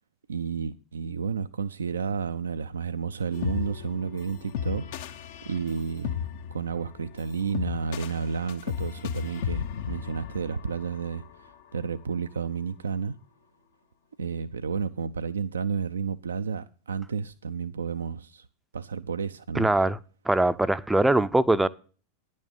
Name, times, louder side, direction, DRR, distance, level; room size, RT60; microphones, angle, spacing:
voice 1, 0.3-4.9 5.4-13.1 14.2-18.5 18.7-19.7, right 6 dB, 70° right, 0.4 m, -31 dB
sound 1, 3.3-11.5, left 8 dB, 55° left, 0.7 m, -35 dB
voice 2, 19.6-20.0 20.3-21.7, right 2 dB, 5° right, 0.5 m, -22 dB
10.5 x 6.3 x 7.1 m
figure-of-eight pair, 90°, 0 cm